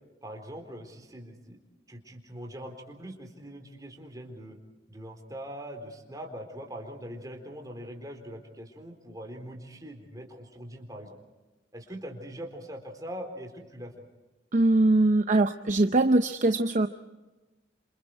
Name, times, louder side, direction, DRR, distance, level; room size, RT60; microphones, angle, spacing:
voice 1, 0.2-1.6 1.9-4.6 4.9-11.2 11.7-13.9, equal, 20° right, 3 dB, 4.0 m, -42 dB
voice 2, 14.5-16.9, right 2 dB, 40° right, 7 dB, 0.7 m, -22 dB
29.0 x 27.5 x 4.8 m, 1.1 s
head